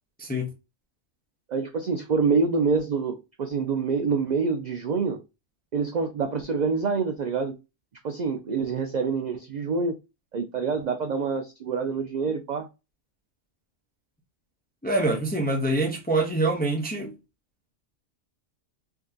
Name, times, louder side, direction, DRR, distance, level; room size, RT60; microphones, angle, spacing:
voice 1, 0.2-0.5 14.8-17.1, right 2 dB, 15° left, 0.3 m, -25 dB
voice 2, 1.5-5.2 5.7-7.6 8.0-9.9 10.3-12.7, right 5 dB, 65° right, 0.4 m, -26 dB
3.5 x 2.7 x 2.3 m
omnidirectional pair, 1.3 m